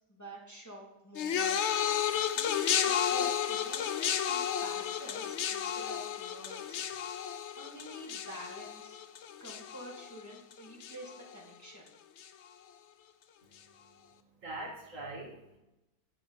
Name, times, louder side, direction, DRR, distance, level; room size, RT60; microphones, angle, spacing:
voice 1, 0.1-2.1 2.4-6.9 7.6-9.0 9.4-11.9, equal, 10° left, -3 dB, 1.8 m, -48 dB
sound 1, 1.2-10.5 10.8-11.3 12.2-12.3, left 9 dB, 70° left, 0.6 m, -32 dB
voice 2, 13.4-15.6, right 2 dB, 50° right, -1 dB, 1.8 m, -45 dB
9.7 x 5.8 x 5.5 m, 0.97 s
omnidirectional pair, 1.8 m